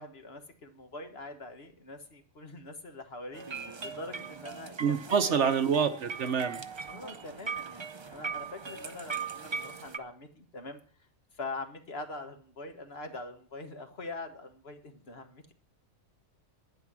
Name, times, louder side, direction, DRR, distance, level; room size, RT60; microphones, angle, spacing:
voice 1, 0.0-5.5 6.9-10.8 11.3-15.5, left 2 dB, 50° left, 5 dB, 1.6 m, -43 dB
sound 1, 3.3-10.0, right 5 dB, 45° right, 0.3 m, -39 dB
voice 2, 4.8-6.6, right 6 dB, 60° right, 10 dB, 1.1 m, -27 dB
11.0 x 9.8 x 6.1 m, 0.42 s
omnidirectional pair, 1.4 m